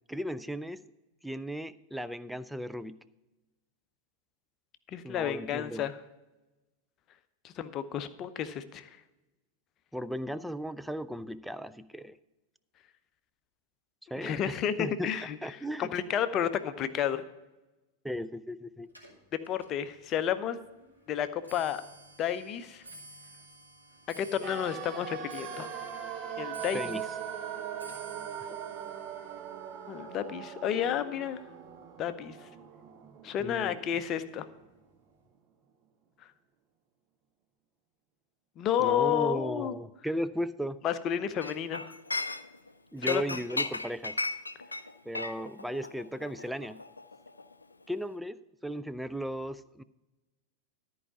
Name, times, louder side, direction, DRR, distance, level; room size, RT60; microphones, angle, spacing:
voice 1, 0.1-0.8 1.2-3.0 5.0-5.9 9.9-12.2 14.1-15.1 15.4-15.9 18.0-18.9 26.7-27.1 33.4-33.8 38.8-40.8 42.9-44.2 45.1-46.8 47.9-49.8, equal, ahead, 13 dB, 0.4 m, -36 dB
voice 2, 4.9-6.0 7.4-8.9 14.2-15.4 15.8-17.2 19.5-20.6 21.1-21.8 22.2-22.8 24.2-25.7 26.4-26.8 29.9-31.4 32.0-32.4 33.2-34.4 38.6-39.8 40.8-41.9 43.1-43.2, left 9 dB, 35° left, 12 dB, 0.7 m, -31 dB
Clock, 18.9-32.2 32.5-33.0 33.8-33.9 34.2-34.6 34.9-35.0, right 3 dB, 90° right, 2.8 m, -53 dB
sound 1, 24.4-34.4 34.6-34.7, right 8 dB, 35° right, 0.9 m, -41 dB
Chink clink, 41.4-42.7 43.0-47.6 47.9-48.1, left 3 dB, 80° left, 0.4 m, -36 dB
13.5 x 4.8 x 6.9 m, 1.0 s
figure-of-eight pair, 90°, 0 cm